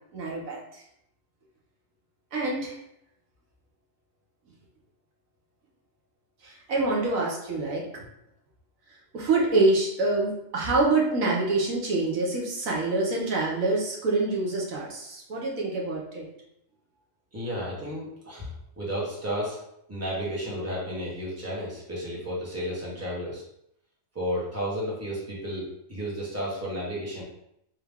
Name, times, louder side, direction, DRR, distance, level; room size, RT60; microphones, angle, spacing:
voice 1, 0.1-0.8 2.3-2.7 6.4-8.0 9.1-16.2, right 2 dB, 85° right, -3 dB, 1.4 m, -26 dB
voice 2, 17.3-18.5 18.8-19.6 19.9-23.4 24.1-27.2, equal, 10° right, -5 dB, 1.1 m, -32 dB
3.9 x 2.9 x 3.5 m, 0.77 s
omnidirectional pair, 1.4 m